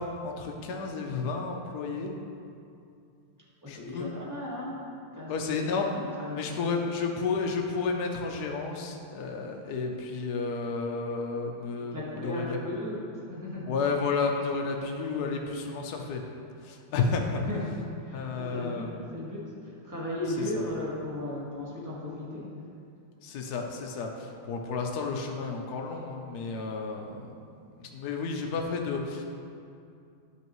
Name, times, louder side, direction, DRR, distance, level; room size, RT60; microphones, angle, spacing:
voice 1, 0.0-2.1 3.7-4.1 5.3-5.9 6.3-12.0 12.2-12.6 13.7-16.2 16.6-17.4 18.1-18.9 20.5-20.6 23.2-27.4 27.8-29.2, left 4 dB, 65° left, 2 dB, 1.0 m, -31 dB
voice 2, 3.6-5.4 5.9-6.8 11.8-13.7 17.4-22.7, left 1 dB, 10° right, -7 dB, 1.4 m, -36 dB
11.5 x 5.6 x 3.1 m, 2.5 s
omnidirectional pair, 2.2 m